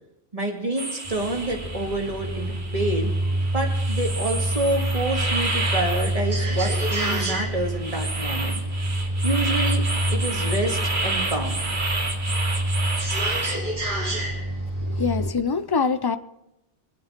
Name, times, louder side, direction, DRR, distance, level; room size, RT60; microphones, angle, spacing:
voice 1, 0.3-3.1 3.5-8.6 9.2-9.8 10.1-11.6, right 1 dB, 35° right, 0 dB, 2.3 m, -27 dB
sound 1, 0.8-13.6, right 2 dB, 75° right, 2.5 m, -30 dB
sound 2, 1.0-15.3, right 1 dB, 50° right, 2.5 m, -27 dB
voice 2, 14.9-16.2, left 5 dB, 35° left, 12 dB, 0.4 m, -24 dB
24.0 x 8.4 x 4.4 m, 0.89 s
omnidirectional pair, 1.1 m